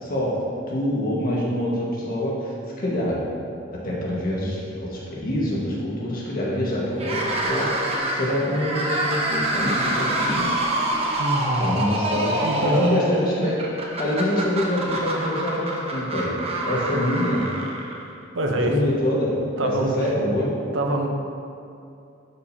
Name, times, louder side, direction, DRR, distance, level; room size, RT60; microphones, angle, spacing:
voice 1, 0.0-2.5 2.8-3.3 3.8-10.5 11.6-12.4 12.6-13.6 14.0-17.5 18.6-20.5, left 1 dB, 50° left, -5 dB, 1.6 m, -25 dB
sound 1, 6.9-18.2, right 1 dB, 30° right, 0.9 m, -26 dB
voice 2, 11.2-11.9 12.4-13.0 18.3-18.8 19.4-20.3 20.7-21.1, right 1 dB, 70° right, 3 dB, 0.8 m, -25 dB
11.5 x 5.1 x 2.8 m, 2.6 s
head